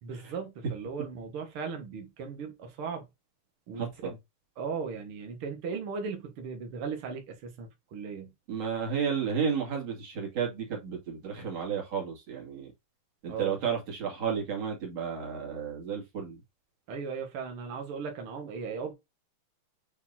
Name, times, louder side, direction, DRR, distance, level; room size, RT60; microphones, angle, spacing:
voice 1, 0.0-3.1 3.7-4.1 4.5-8.3 13.3-13.6 16.9-18.9, right 5 dB, 65° right, 1.3 m, -37 dB
voice 2, 3.8-4.2 8.5-12.7 13.2-16.4, right 7 dB, 45° right, 3.0 m, -32 dB
8.0 x 4.5 x 2.8 m
omnidirectional pair, 4.8 m